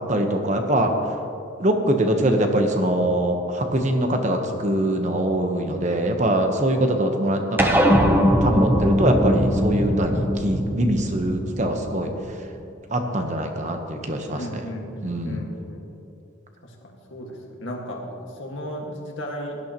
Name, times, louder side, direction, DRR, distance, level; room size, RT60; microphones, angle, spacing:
voice 1, 0.1-0.9 1.6-7.8 8.4-12.1 12.9-14.7 15.0-15.4, right 1 dB, 35° right, 4 dB, 1.0 m, -23 dB
sound 1, 7.6-12.3, equal, 10° right, 0.8 m, -21 dB
voice 2, 14.3-16.0 16.6-19.6, equal, 70° left, 0 dB, 1.8 m, -35 dB
17.0 x 12.0 x 3.0 m, 2.7 s
head